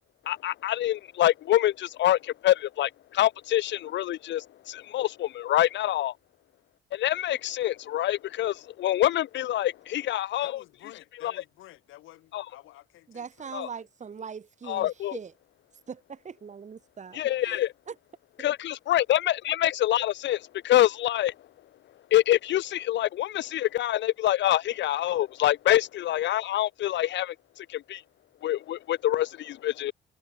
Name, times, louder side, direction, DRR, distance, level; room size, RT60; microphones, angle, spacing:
voice 1, 0.3-6.1 6.9-10.5 11.2-11.3 12.3-12.4 13.5-13.7 14.7-15.2 17.1-17.7 18.4-21.3 22.1-28.0 28.4-29.9, left 13 dB, 65° left, 0.6 m, -26 dB
voice 2, 10.4-13.9, left 15 dB, 90° left, 4.7 m, -50 dB
voice 3, 13.1-15.3 15.9-17.6 17.9-18.0, right 6 dB, 35° right, 1.5 m, -41 dB
cardioid pair, 90°, 20 cm